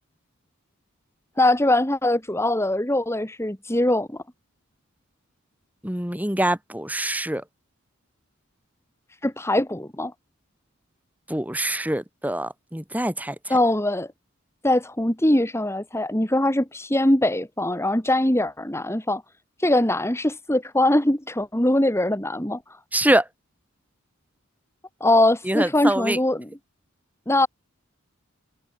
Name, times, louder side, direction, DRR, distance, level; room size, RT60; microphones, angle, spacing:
voice 1, 1.4-4.2 9.2-10.1 13.5-14.1 14.6-19.2 19.6-22.6 25.0-26.5 27.3-27.5, left 1 dB, 10° left, 2.5 m, -22 dB
voice 2, 5.8-7.4 11.3-13.6 22.9-23.3 25.4-26.2, right 1 dB, 10° right, 7.6 m, -24 dB
head